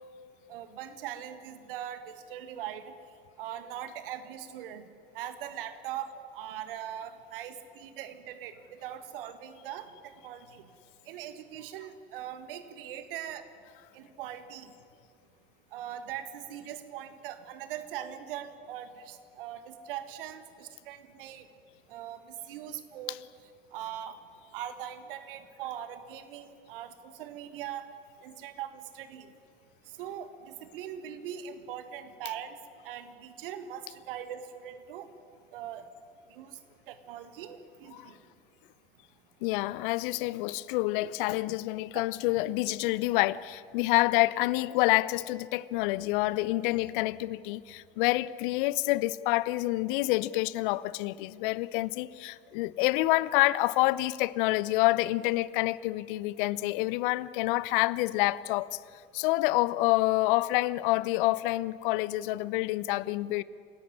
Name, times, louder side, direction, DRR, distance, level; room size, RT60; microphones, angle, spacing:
voice 1, 0.5-2.9 3.4-4.9 5.1-10.6 11.1-13.4 13.9-14.7 15.7-21.5 21.9-23.2 23.7-24.2 24.5-27.9 28.2-29.3 30.0-32.6 32.8-35.1 35.5-35.9 36.3-36.5 36.9-38.2, right 10 dB, 65° right, 1.8 m, -41 dB
voice 2, 39.4-58.8 59.1-63.4, left 19 dB, 60° left, 0.7 m, -27 dB
27.5 x 17.0 x 9.9 m
figure-of-eight pair, 60°, 29 cm